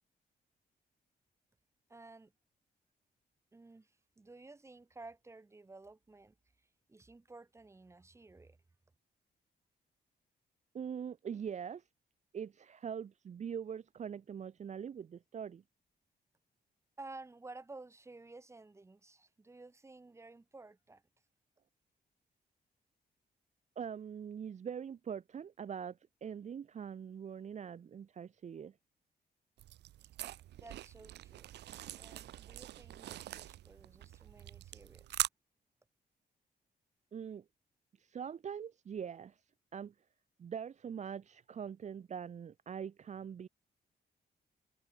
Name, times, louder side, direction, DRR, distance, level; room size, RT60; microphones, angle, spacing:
voice 1, 1.9-2.3 3.5-6.3 6.9-8.6 17.0-21.0 30.6-31.5 31.9-35.2, right 3 dB, 15° right, 2.3 m, -53 dB
voice 2, 10.7-11.8 12.3-15.6 23.8-28.7 37.1-37.4 38.0-39.4 39.7-39.9 40.4-43.5, right 7 dB, 45° right, 1.3 m, -43 dB
sound 1, 29.6-35.3, right 14 dB, 85° right, 0.5 m, -43 dB
wide cardioid pair, 165°, 17 cm